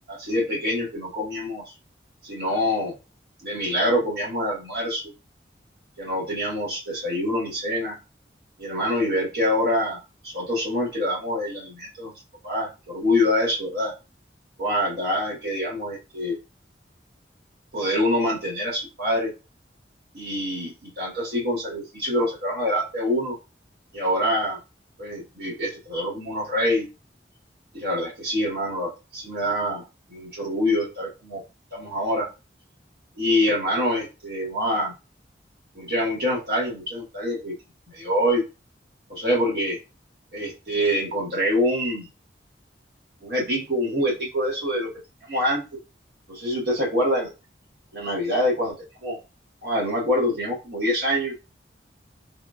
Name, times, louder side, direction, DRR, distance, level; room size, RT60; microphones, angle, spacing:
voice 1, 0.1-1.6 2.2-2.9 3.4-5.0 6.0-8.0 8.6-12.1 12.4-13.9 14.6-16.4 17.7-19.3 20.1-23.4 23.9-24.6 25.0-26.9 27.7-29.8 30.1-31.4 31.7-32.3 33.1-34.9 35.7-37.5 37.9-38.4 39.1-39.8 40.3-42.1 43.2-44.9 45.3-45.6 46.3-47.3 47.9-48.7 49.0-49.2 49.6-51.3, left 1 dB, 60° right, -3 dB, 1.3 m, -25 dB
3.5 x 2.4 x 2.4 m, 0.29 s
head